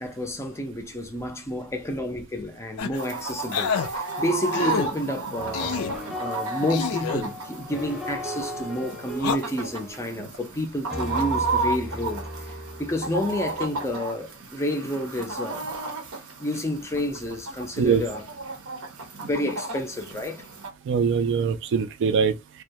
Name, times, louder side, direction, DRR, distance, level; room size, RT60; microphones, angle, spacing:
voice 1, 0.0-5.8 6.2-12.5 12.8-15.7 16.4-18.2 19.2-20.5, left 1 dB, 15° left, 0.4 m, -30 dB
sound 1, 2.8-3.0 3.5-3.9 4.5-4.9 5.5-6.0 6.7-7.2 9.1-9.4, left 7 dB, 80° left, 0.4 m, -27 dB
Chicken rooster, 2.9-20.7, right 3 dB, 75° right, 0.7 m, -33 dB
sound 2, 5.4-14.0, left 1 dB, 5° right, 0.8 m, -36 dB
voice 2, 20.9-22.6, right 6 dB, 60° right, 0.3 m, -23 dB
2.2 x 2.1 x 2.6 m
head